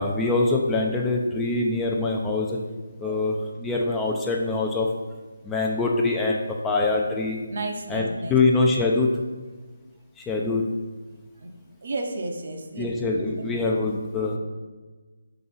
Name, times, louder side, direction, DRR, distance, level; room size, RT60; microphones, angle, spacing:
voice 1, 0.0-2.6 3.0-4.9 5.4-7.4 7.9-9.1 10.2-10.7 12.8-14.4, left 3 dB, 10° left, -1 dB, 0.5 m, -24 dB
voice 2, 7.5-8.4 11.4-11.5 11.8-12.9 13.5-13.6, right 2 dB, 55° right, 3 dB, 0.8 m, -32 dB
4.6 x 4.0 x 5.5 m, 1.3 s
figure-of-eight pair, 160°, 0 cm